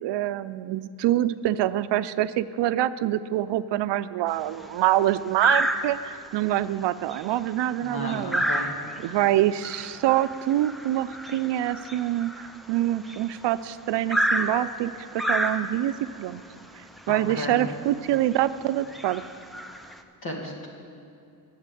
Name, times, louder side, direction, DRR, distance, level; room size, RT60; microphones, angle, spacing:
voice 1, 0.0-8.4 9.0-15.9 16.2-16.4 16.8-19.2, right 13 dB, 85° right, 14 dB, 0.5 m, -25 dB
sound 1, 4.3-4.7 5.4-6.2 6.6-6.8 7.1-13.4 14.1-16.0 17.0-17.1 17.5-17.6 18.2-18.4 18.8-20.0, right 1 dB, ahead, 0.4 m, -29 dB
voice 2, 7.8-8.7 9.1-9.2 17.1-17.7 20.2-20.7, left 1 dB, 60° left, 0 dB, 2.3 m, -34 dB
11.0 x 7.4 x 9.1 m, 2.6 s
wide cardioid pair, 170°, 41 cm